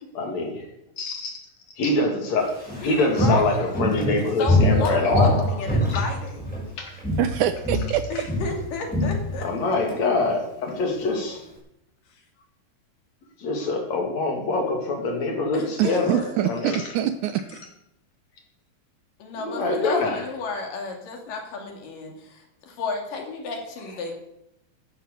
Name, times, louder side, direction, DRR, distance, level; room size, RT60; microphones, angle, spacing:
voice 1, 0.2-0.5 1.0-1.3 1.8-2.5 2.8-5.4 5.9-6.0 6.8-6.9 9.4-11.4 13.4-16.9 19.3-20.2, left 2 dB, 55° left, 2 dB, 3.7 m, -25 dB
Walk footsteps, 2.4-6.7 7.0-7.4 7.6-10.0 10.3-10.4, left 1 dB, ahead, 6.9 m, -23 dB
voice 2, 2.8-3.7 4.4-6.5 8.1-9.5 15.5-16.3 19.2-24.1, left 4 dB, 75° left, 3 dB, 4.0 m, -33 dB
voice 3, 7.2-8.3 15.8-17.6, right 10 dB, 75° right, 11 dB, 2.0 m, -25 dB
13.0 x 11.0 x 7.0 m, 0.82 s
omnidirectional pair, 4.0 m